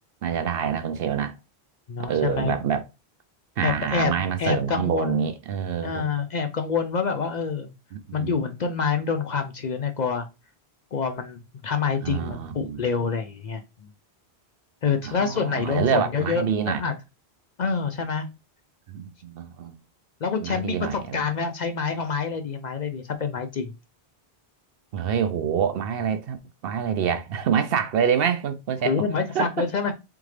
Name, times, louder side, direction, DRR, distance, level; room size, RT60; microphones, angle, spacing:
voice 1, 0.2-1.4 2.1-2.8 3.6-6.1 7.9-8.3 12.0-12.8 15.0-16.8 18.9-19.8 20.4-21.2 24.9-26.4 26.6-29.1 29.3-29.7, right 7 dB, 70° right, 0.8 m, -26 dB
voice 2, 1.9-2.5 3.6-5.3 5.8-7.7 8.1-10.3 10.9-13.9 14.8-16.9 17.6-18.3 20.2-23.7 28.8-29.9, left 5 dB, 55° left, 0.6 m, -27 dB
3.7 x 3.6 x 3.2 m
omnidirectional pair, 1.1 m